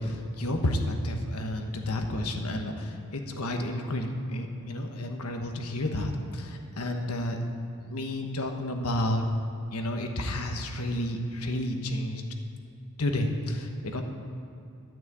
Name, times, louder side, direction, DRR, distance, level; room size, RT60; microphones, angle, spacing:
voice 1, 0.0-7.4 7.8-9.3 9.7-12.2 13.0-14.0, left 1 dB, 75° left, 4 dB, 1.3 m, -31 dB
12.5 x 6.1 x 8.5 m, 2.7 s
head